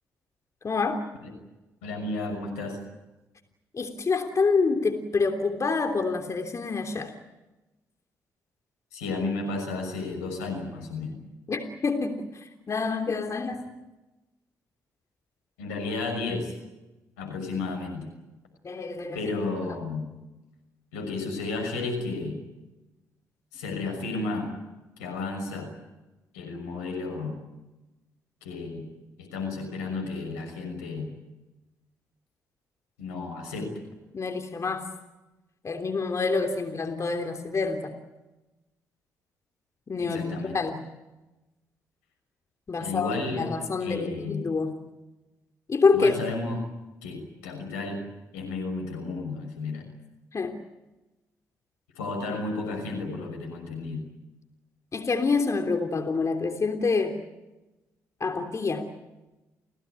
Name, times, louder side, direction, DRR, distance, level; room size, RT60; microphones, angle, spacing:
voice 1, 0.6-1.0 3.7-7.1 11.5-13.6 18.6-19.2 19.7-19.8 34.1-34.9 35.6-37.9 39.9-40.8 42.7-44.7 45.7-46.1 50.3-50.5 54.9-57.1 58.2-58.9, left 4 dB, 40° left, 4 dB, 3.2 m, -27 dB
voice 2, 1.8-2.8 8.9-11.2 15.6-16.5 17.2-18.1 19.1-20.1 20.9-22.4 23.5-24.5 25.0-25.7 26.3-27.4 28.4-28.9 29.2-31.1 33.0-33.8 40.0-40.6 42.8-43.5 43.8-44.4 45.9-46.6 47.0-48.0 48.3-49.8 51.9-54.0, left 3 dB, 85° left, 4 dB, 6.2 m, -32 dB
30.0 x 18.0 x 9.6 m, 1.0 s
hypercardioid pair, 45°, 8 cm